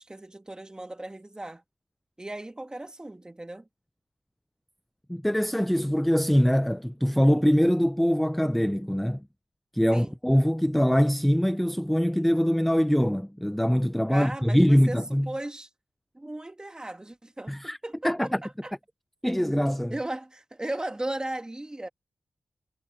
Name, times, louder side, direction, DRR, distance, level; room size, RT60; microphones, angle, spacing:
voice 1, 0.0-1.6 2.2-3.7 9.9-10.1 14.1-15.0 15.3-15.7 16.1-18.1 18.4-18.7 19.9-21.9, right 1 dB, 20° right, 2.2 m, -36 dB
voice 2, 5.1-9.2 9.7-15.3 17.5-17.8 18.0-18.4 19.2-19.9, equal, 5° left, 0.5 m, -23 dB
cardioid pair, 65°, 4 cm